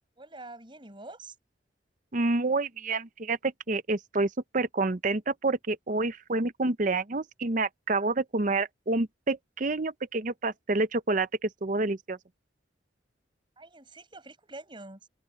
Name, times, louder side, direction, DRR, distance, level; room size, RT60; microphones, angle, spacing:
voice 1, 0.2-1.4 13.6-15.0, right 2 dB, 25° right, 7.4 m, -46 dB
voice 2, 2.1-12.2, right 3 dB, 45° right, 0.8 m, -28 dB
head